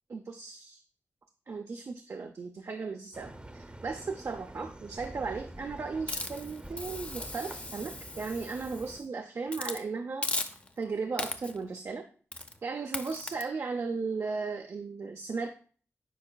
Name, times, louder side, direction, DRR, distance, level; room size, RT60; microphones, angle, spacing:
voice 1, 0.1-0.8 1.5-10.3 10.8-12.0 12.6-15.5, right 4 dB, 60° right, 4 dB, 0.6 m, -36 dB
sound 1, 3.1-9.0, right 1 dB, 20° right, 0.7 m, -47 dB
Hiss, 6.1-9.0 9.5-9.8 10.2-10.8 11.2-11.7 12.3-12.6 12.9-13.4, left 2 dB, 25° left, 0.6 m, -37 dB
9.2 x 4.8 x 2.3 m, 0.42 s
wide cardioid pair, 80°, 5 cm